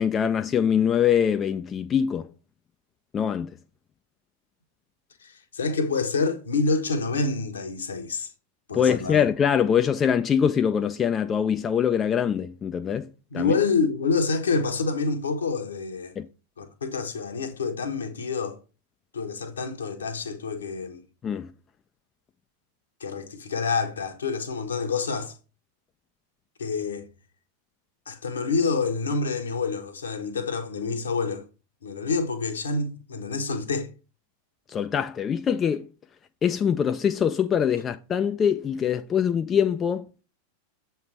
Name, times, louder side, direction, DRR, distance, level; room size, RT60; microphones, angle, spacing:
voice 1, 0.0-2.3 3.1-3.5 8.7-13.1 13.3-13.5 16.2-16.3 21.2-21.5 34.7-35.8 36.4-40.1, left 8 dB, 25° left, 0.3 m, -23 dB
voice 2, 5.2-8.3 8.7-9.2 13.3-16.1 16.6-18.6 19.1-21.0 23.0-25.3 26.6-27.1 28.1-31.4 31.8-33.9, left 4 dB, 70° left, 1.0 m, -27 dB
7.2 x 3.4 x 4.4 m
figure-of-eight pair, 90°, 0 cm